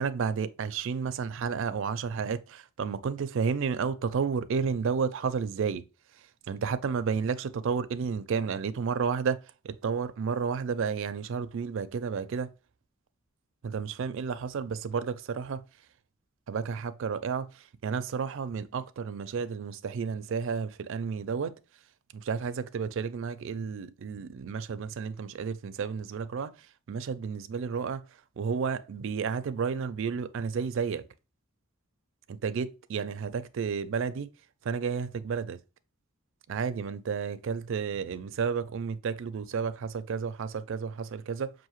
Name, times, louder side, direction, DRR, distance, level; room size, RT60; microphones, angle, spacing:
voice 1, 0.0-5.8 6.5-12.5 13.6-15.6 16.5-21.6 22.1-26.6 26.9-28.0 28.4-31.0 32.4-34.3 34.6-35.6 36.5-41.5, right 6 dB, 65° right, 0.4 m, -31 dB
5.5 x 2.6 x 3.0 m
head